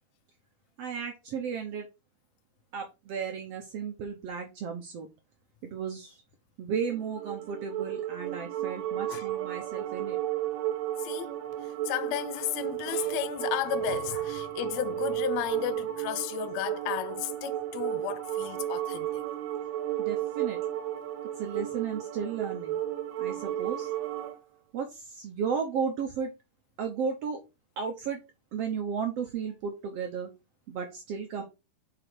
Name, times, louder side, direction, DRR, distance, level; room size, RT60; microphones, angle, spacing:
voice 1, 0.8-1.9 2.7-5.1 5.6-6.2 6.6-10.2 20.0-20.8 21.4-22.8 23.2-23.9 24.7-26.3 26.8-27.4 27.8-28.2 28.5-30.3 30.7-31.4, right 6 dB, 65° right, 1.6 m, -34 dB
sound 1, 6.8-24.4, right 12 dB, 85° right, 2.5 m, -33 dB
voice 2, 11.0-11.3 11.8-19.2, left 12 dB, 80° left, 1.6 m, -33 dB
6.0 x 5.5 x 4.8 m
omnidirectional pair, 3.8 m